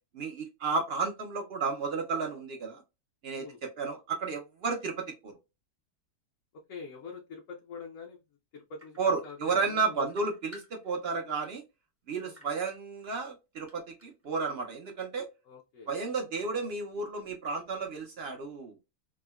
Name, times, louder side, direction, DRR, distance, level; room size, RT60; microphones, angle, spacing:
voice 1, 0.1-2.8 3.2-5.3 9.0-11.6 12.1-15.3 15.9-18.8, right 4 dB, 60° right, 3 dB, 0.6 m, -32 dB
voice 2, 6.7-8.2 8.5-10.1 12.2-12.6 15.4-15.9, left 5 dB, 65° left, 0 dB, 0.9 m, -45 dB
sound 1, 8.8-9.7 10.1-11.2 11.6-11.7 12.3-13.3 13.6-14.3, left 1 dB, 20° right, 0.3 m, -54 dB
3.5 x 2.1 x 2.2 m, 0.26 s
omnidirectional pair, 1.7 m